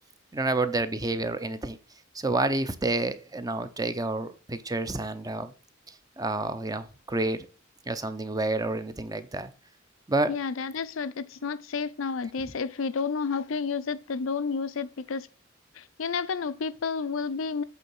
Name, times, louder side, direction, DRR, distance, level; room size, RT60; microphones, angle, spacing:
voice 1, 0.3-1.8 2.1-5.5 5.9-7.5 7.9-9.5 10.1-10.4 11.4-11.5 12.5-12.6, right 2 dB, 20° right, 0.6 m, -29 dB
voice 2, 10.3-15.3 16.0-17.6, left 5 dB, 80° left, 0.5 m, -30 dB
8.2 x 4.0 x 5.3 m
head